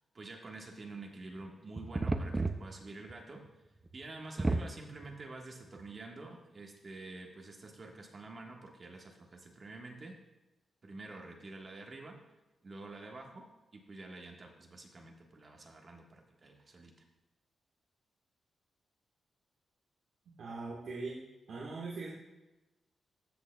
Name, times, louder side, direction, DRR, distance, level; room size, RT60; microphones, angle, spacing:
voice 1, 0.1-3.4 3.9-10.2 10.8-12.2 12.6-13.5 13.7-16.9, right 2 dB, 40° right, 1 dB, 1.4 m, -48 dB
sound 1, 1.4-1.5 1.8-3.1 3.5-3.6 3.9-4.0 4.4-5.1 5.8-5.9, right 2 dB, 20° right, 0.5 m, -32 dB
voice 2, 20.4-21.2 21.5-22.1, right 3 dB, 75° right, -5 dB, 1.4 m, -40 dB
14.0 x 6.3 x 2.3 m, 1.0 s
cardioid pair, 95°, 0 cm